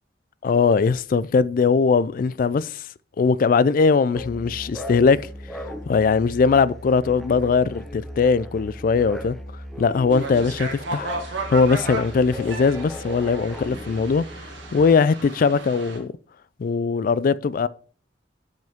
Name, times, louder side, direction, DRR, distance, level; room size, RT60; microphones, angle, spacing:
voice 1, 0.4-2.8 3.2-5.3 5.9-9.4 9.8-11.1 11.5-14.3 14.7-16.1 16.6-17.7, left 5 dB, 45° left, 0.3 m, -20 dB
sound 1, 4.1-15.0, left 1 dB, ahead, 0.7 m, -37 dB
sound 2, 10.1-16.0, right 2 dB, 80° right, 1.8 m, -35 dB
9.1 x 5.3 x 3.5 m
head